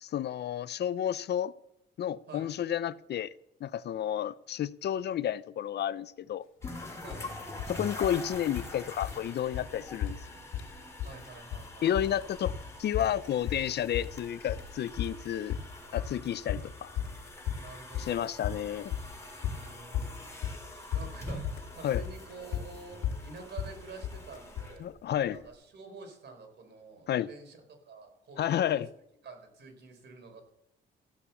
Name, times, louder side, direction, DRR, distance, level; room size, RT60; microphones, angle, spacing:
voice 1, 0.0-1.5 2.0-3.3 3.6-6.4 7.7-10.2 11.8-12.5 12.8-15.6 15.9-16.9 18.0-18.9 21.8-22.0 24.8-25.4 27.1-27.3 28.4-28.9, left 10 dB, 60° left, 0.6 m, -31 dB
sound 1, 6.6-6.8 7.1-7.7 8.0-8.8 9.0-9.3 9.5-9.7 10.0-10.7 11.0-11.7 12.0-24.8, left 9 dB, 90° left, 2.4 m, -36 dB
sound 2, 6.6-25.5, left 1 dB, 15° left, 5.5 m, -45 dB
voice 2, 11.0-12.1 17.6-18.3 19.5-20.4 20.9-24.9 25.2-27.6 27.8-28.8 29.2-30.4, right 3 dB, 60° right, 4.4 m, -48 dB
15.0 x 8.4 x 7.1 m
cardioid pair, 90°, 20 cm